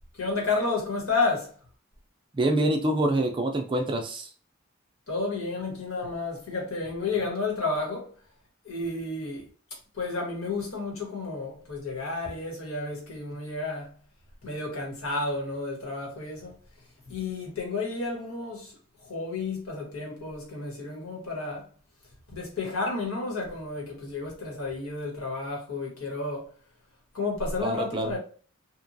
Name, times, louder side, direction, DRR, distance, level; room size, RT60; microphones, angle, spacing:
voice 1, 0.1-1.5 5.1-8.1 8.6-9.4 9.9-13.9 14.4-16.6 17.1-18.7 19.0-21.6 22.3-26.5 27.1-28.2, left 3 dB, 80° left, 1.2 m, -31 dB
voice 2, 2.3-4.3 27.6-28.1, right 1 dB, 20° right, 0.3 m, -26 dB
2.9 x 2.2 x 2.6 m
head